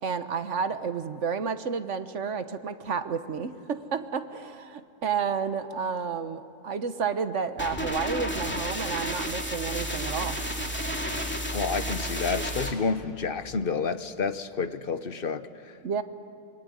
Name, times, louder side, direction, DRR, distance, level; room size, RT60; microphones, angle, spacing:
voice 1, 0.0-10.4 15.8-16.0, right 6 dB, 55° right, 10 dB, 1.3 m, -31 dB
sound 1, 7.6-12.7, equal, 5° left, 2.4 m, -31 dB
voice 2, 11.5-15.7, left 5 dB, 45° left, 12 dB, 0.9 m, -30 dB
25.5 x 23.0 x 9.6 m, 2.7 s
omnidirectional pair, 1.6 m